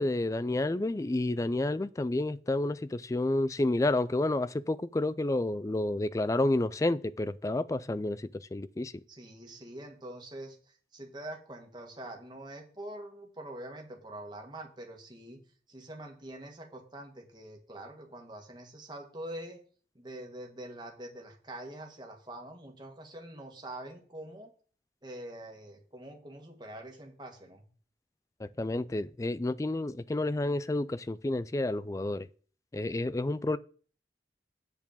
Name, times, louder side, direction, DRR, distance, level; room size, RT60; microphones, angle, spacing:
voice 1, 0.0-8.9 28.4-32.3 32.7-33.6, left 2 dB, 20° left, 0.3 m, -30 dB
voice 2, 9.1-15.4 15.7-19.6 19.9-24.5 25.0-27.7, right 1 dB, 25° right, 1.6 m, -45 dB
8.2 x 4.5 x 7.0 m
head